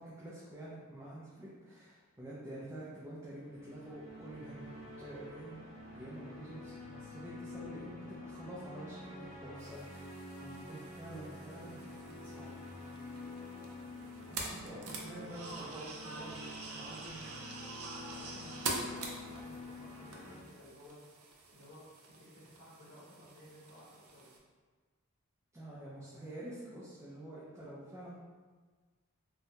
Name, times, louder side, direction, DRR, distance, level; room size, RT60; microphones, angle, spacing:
voice 1, 0.0-5.6 5.9-12.5 14.3-17.4 25.5-28.2, right 1 dB, 15° right, -8 dB, 0.4 m, -48 dB
sound 1, 3.4-20.4, left 2 dB, 40° left, 0.9 m, -48 dB
sound 2, 9.6-24.4, right 3 dB, 80° right, 0.4 m, -46 dB
voice 2, 14.2-15.0 18.1-21.0 21.5-24.3, equal, 85° left, -7 dB, 0.7 m, -56 dB
2.7 x 2.2 x 2.8 m, 1.4 s
head